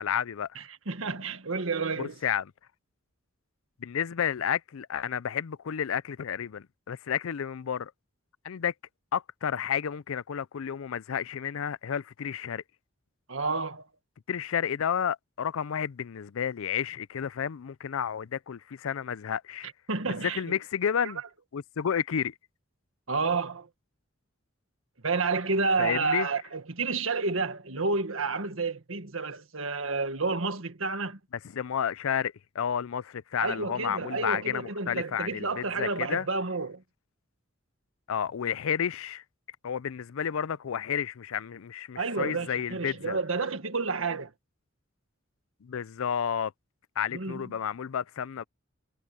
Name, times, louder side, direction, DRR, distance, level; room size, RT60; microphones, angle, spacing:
voice 1, 0.0-0.5 2.0-2.4 3.8-7.9 8.4-8.7 9.1-12.6 14.3-19.7 20.2-21.2 21.5-22.3 25.8-26.3 31.5-36.3 38.1-39.2 39.6-43.2 45.6-46.5 47.0-48.4, left 8 dB, 90° left, 0.5 m, -31 dB
voice 2, 0.6-2.2 13.3-13.9 19.6-20.6 21.0-21.1 23.1-23.7 25.0-31.2 33.4-36.8 42.0-44.3 47.1-47.6, right 4 dB, 85° right, 1.7 m, -30 dB
head